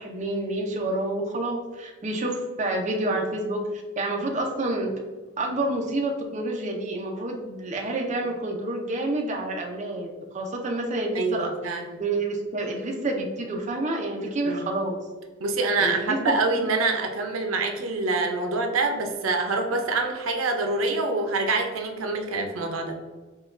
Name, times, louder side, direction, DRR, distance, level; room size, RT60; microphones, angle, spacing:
voice 1, 0.0-4.9 5.4-11.7 12.0-15.0 15.8-16.7, right 2 dB, 35° right, 0 dB, 0.5 m, -28 dB
voice 2, 11.1-12.0 14.5-14.7 15.4-22.9, right 3 dB, 85° right, 4 dB, 0.5 m, -26 dB
5.6 x 2.3 x 2.5 m, 1.3 s
head